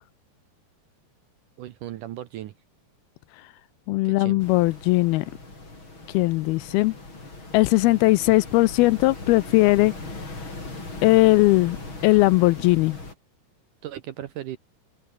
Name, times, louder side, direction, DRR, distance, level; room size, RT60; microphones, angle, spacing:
voice 1, 1.6-2.5 4.0-4.4 13.8-14.6, right 12 dB, 70° right, 2.1 m, -36 dB
voice 2, 3.9-5.3 6.1-6.9 7.5-9.9 11.0-11.8 12.0-13.0, left 20 dB, 80° left, 2.3 m, -19 dB
sound 1, 4.4-13.1, left 2 dB, 30° left, 7.6 m, -39 dB
open air
omnidirectional pair, 4.7 m